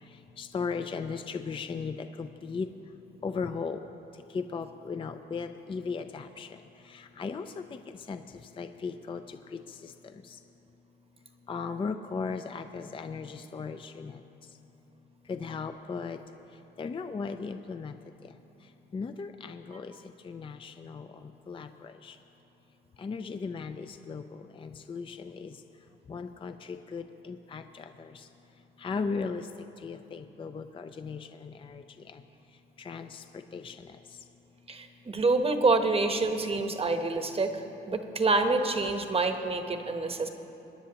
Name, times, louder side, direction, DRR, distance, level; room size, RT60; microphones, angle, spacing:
voice 1, 0.4-2.7 3.2-3.8 4.3-6.5 6.9-7.8 8.1-8.2 8.6-9.9 11.5-14.1 15.3-16.2 16.8-17.9 18.9-19.9 20.2-21.1 21.5-22.1 23.0-25.5 26.1-28.1 28.8-29.5 29.8-31.8 32.1-32.2 32.8-33.2 33.5-33.8, left 5 dB, 25° left, 8 dB, 0.4 m, -37 dB
voice 2, 34.7-40.3, right 3 dB, 30° right, 6 dB, 1.0 m, -27 dB
22.5 x 10.0 x 2.9 m, 3.0 s
cardioid pair, 90°, 20 cm